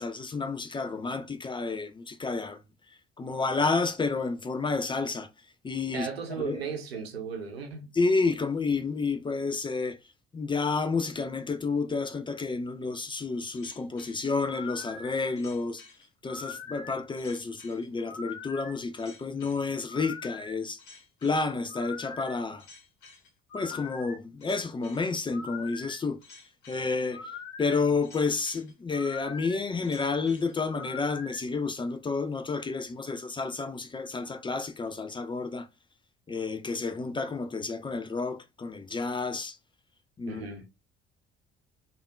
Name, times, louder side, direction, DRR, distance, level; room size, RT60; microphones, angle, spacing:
voice 1, 0.0-2.6 3.2-5.3 5.6-6.1 6.4-6.7 7.9-10.0 10.3-15.8 16.2-20.8 21.2-22.6 23.5-26.2 26.7-27.3 27.6-35.7 36.3-39.6 40.2-40.4, left 4 dB, 15° left, 0.4 m, -30 dB
voice 2, 5.9-7.9 40.3-40.6, right 5 dB, 85° right, 0.7 m, -36 dB
sound 1, 13.5-31.4, left 5 dB, 60° left, 1.1 m, -44 dB
3.4 x 2.4 x 2.2 m
figure-of-eight pair, 55°, 30 cm